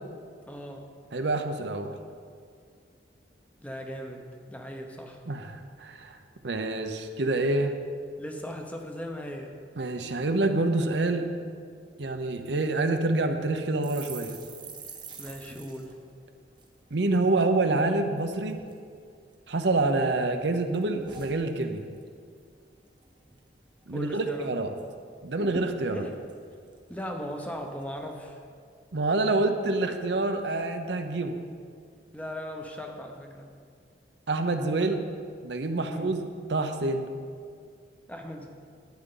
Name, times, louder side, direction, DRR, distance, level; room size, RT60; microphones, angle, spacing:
voice 1, 0.5-0.9 3.6-5.2 8.2-9.6 15.2-15.9 23.9-24.5 25.9-26.2 26.9-28.4 32.1-33.5 35.8-36.1 38.1-38.5, equal, 10° left, 3 dB, 0.8 m, -38 dB
voice 2, 1.1-2.0 5.3-6.2 6.4-7.8 9.8-11.3 12.0-14.4 16.9-18.6 19.5-21.9 23.9-24.7 25.2-26.0 28.9-31.4 34.3-35.0 35.4-36.2 36.5-37.1, right 2 dB, 75° right, 6 dB, 0.8 m, -27 dB
sound 1, 13.8-17.4 17.7-17.9 18.2-18.8 19.3-20.1 20.4-22.1 22.4-22.6 22.9-23.4 23.8-23.9 24.2-24.9 25.1-25.2 25.4-27.3 27.8-28.1, right 4 dB, 25° right, 1.0 m, -47 dB
11.5 x 9.1 x 3.9 m, 2.2 s
head